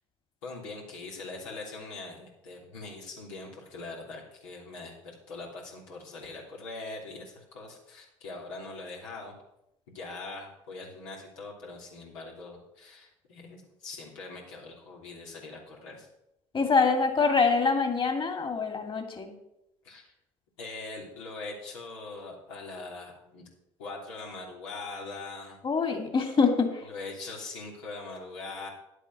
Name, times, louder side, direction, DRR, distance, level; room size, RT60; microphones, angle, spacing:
voice 1, 0.4-9.3 9.9-16.1 19.8-20.1 20.6-23.4 23.8-25.6 26.9-28.7, left 3 dB, 85° left, -2 dB, 3.2 m, -42 dB
voice 2, 16.5-19.3 25.6-26.9, left 4 dB, 35° left, 5 dB, 2.5 m, -25 dB
10.5 x 8.3 x 6.0 m, 0.85 s
hypercardioid pair, 70°, 16 cm